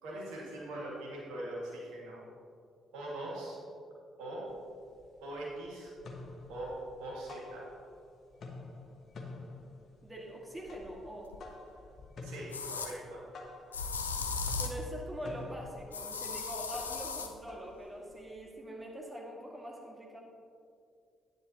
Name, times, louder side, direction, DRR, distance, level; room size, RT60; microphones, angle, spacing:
voice 1, 0.0-2.2 2.9-3.6 4.2-4.5 5.2-5.9 6.5-7.7 12.2-13.2, right 1 dB, 70° right, -5 dB, 2.1 m, -41 dB
sound 1, 4.5-4.6 4.9-5.6 5.9-8.1 8.3-18.5, left 3 dB, 55° left, 1.2 m, -49 dB
voice 2, 10.0-11.3 14.2-20.2, equal, 20° right, -2 dB, 2.0 m, -43 dB
sound 2, 11.3-11.4 12.5-12.9 13.7-14.8 15.9-17.3, left 4 dB, 90° left, 0.4 m, -36 dB
10.0 x 10.0 x 3.0 m, 2.3 s
figure-of-eight pair, 40°, 0 cm